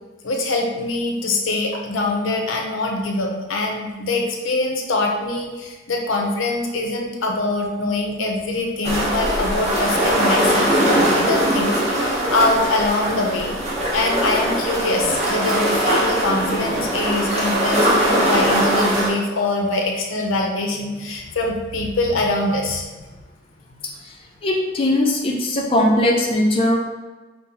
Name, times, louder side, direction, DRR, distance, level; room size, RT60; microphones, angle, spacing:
voice 1, 0.2-13.6 13.9-22.9, left 2 dB, 90° left, 1 dB, 0.6 m, -23 dB
sound 1, 8.8-19.1, right 1 dB, 35° right, 0.8 m, -20 dB
voice 2, 23.8-26.8, left 1 dB, 30° left, -1 dB, 0.4 m, -20 dB
5.4 x 2.0 x 2.8 m, 1.2 s
head